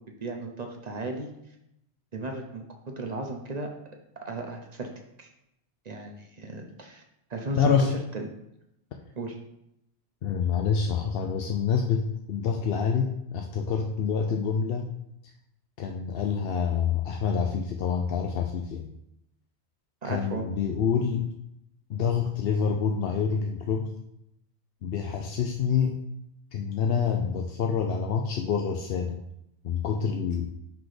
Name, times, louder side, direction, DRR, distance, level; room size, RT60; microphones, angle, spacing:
voice 1, 0.2-1.3 2.1-2.6 3.0-3.7 4.2-4.9 5.2-5.3 5.8-7.0 7.3-8.3 9.2-9.3 20.0-20.4, right 2 dB, 40° right, 3 dB, 0.8 m, -35 dB
voice 2, 7.6-7.9 10.2-14.9 15.8-18.9 20.0-21.3 21.9-23.9 24.8-26.0 26.5-29.2 29.6-30.5, left 6 dB, 65° left, 3 dB, 0.7 m, -27 dB
5.9 x 3.5 x 4.9 m, 0.82 s
omnidirectional pair, 1.1 m